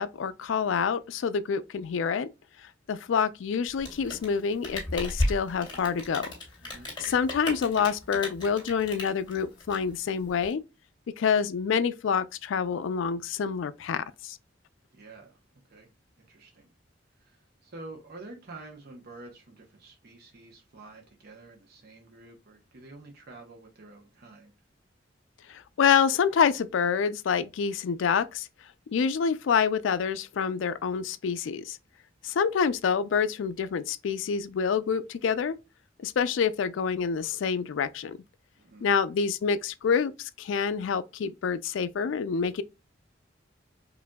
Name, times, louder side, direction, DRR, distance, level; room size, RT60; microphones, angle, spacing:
voice 1, 0.0-2.3 2.9-6.3 7.0-10.6 11.2-14.4 25.5-28.5 28.9-31.8 32.2-35.6 36.0-38.2 38.8-42.6, left 6 dB, 90° left, 0.4 m, -27 dB
Rain, 3.7-10.5, left 1 dB, 20° left, 2.3 m, -34 dB
voice 2, 14.9-15.4 15.7-15.9 16.2-16.7 17.2-24.5 38.6-38.9, right 2 dB, 55° right, 0.8 m, -48 dB
5.0 x 2.6 x 2.2 m
head